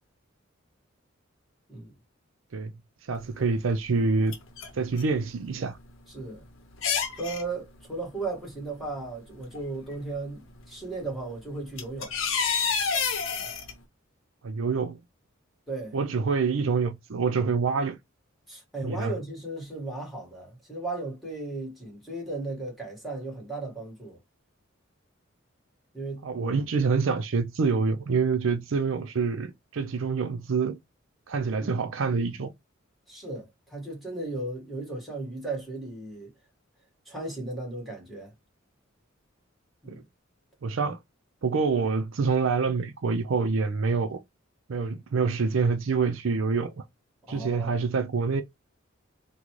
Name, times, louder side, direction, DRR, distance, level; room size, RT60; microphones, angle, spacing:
voice 1, 3.1-4.3 4.7-5.8 14.4-15.0 15.9-18.0 18.8-19.1 26.2-30.8 31.3-32.5 39.9-40.0 40.6-41.0 41.4-44.2 44.7-46.7 47.3-48.4, right 4 dB, 70° right, 0.5 m, -26 dB
sound 1, 3.2-3.3 4.1-5.2 5.4-5.5 6.2-6.3 6.7-7.4 8.8-8.9 9.5-10.0 11.2-11.3 11.6-13.7, left 6 dB, 75° left, 0.7 m, -28 dB
voice 2, 6.1-6.4 7.2-12.1 15.7-16.0 18.5-24.2 25.9-26.3 31.5-31.7 33.1-36.3 37.0-38.3 39.8-40.0 47.3-47.8, right 2 dB, ahead, 1.7 m, -36 dB
3.8 x 2.2 x 3.0 m
head